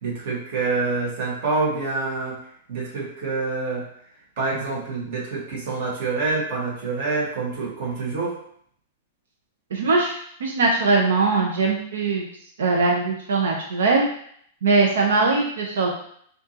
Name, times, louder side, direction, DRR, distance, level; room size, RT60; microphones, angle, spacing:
voice 1, 0.0-2.4 2.7-3.9 4.4-8.4, right 3 dB, 45° right, -3 dB, 1.4 m, -26 dB
voice 2, 9.7-10.1 10.4-12.3 12.6-14.0 14.6-15.9, right 3 dB, 85° right, 0 dB, 0.8 m, -21 dB
5.8 x 2.6 x 2.9 m, 0.64 s
supercardioid pair, 165°, 0 cm